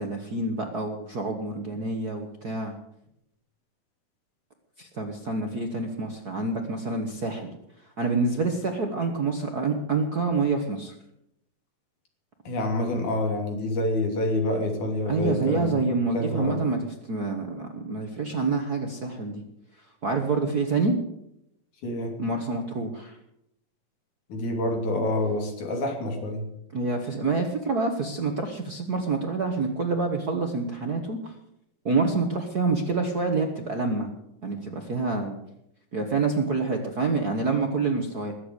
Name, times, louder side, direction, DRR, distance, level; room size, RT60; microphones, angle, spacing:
voice 1, 0.0-2.7 4.8-7.5 8.0-10.9 15.0-19.4 20.0-21.0 22.2-23.2 26.7-31.3 31.8-34.1 34.4-35.4 35.9-38.3, right 3 dB, 80° right, 3 dB, 0.8 m, -27 dB
voice 2, 12.5-15.8 16.1-16.6 21.8-22.2 24.3-26.5, left 1 dB, 60° left, 3 dB, 4.3 m, -27 dB
21.0 x 8.1 x 8.3 m, 0.80 s
omnidirectional pair, 4.1 m